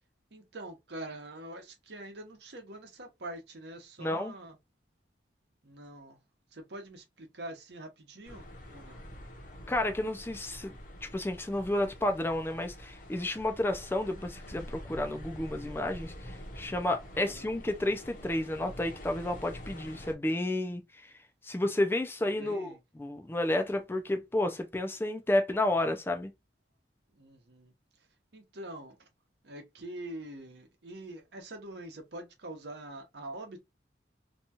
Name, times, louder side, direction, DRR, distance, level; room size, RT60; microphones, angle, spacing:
voice 1, 0.3-4.6 5.6-6.2 6.5-9.0 17.1-17.5 22.3-22.8 27.1-28.1 28.3-29.1 29.4-33.6, right 1 dB, 65° right, 0.8 m, -45 dB
voice 2, 4.0-4.3 9.7-10.7 11.0-21.1 21.4-26.3, left 1 dB, 10° left, 0.3 m, -31 dB
sound 1, 8.2-20.1, equal, 45° left, 0.7 m, -46 dB
2.8 x 2.3 x 2.7 m
head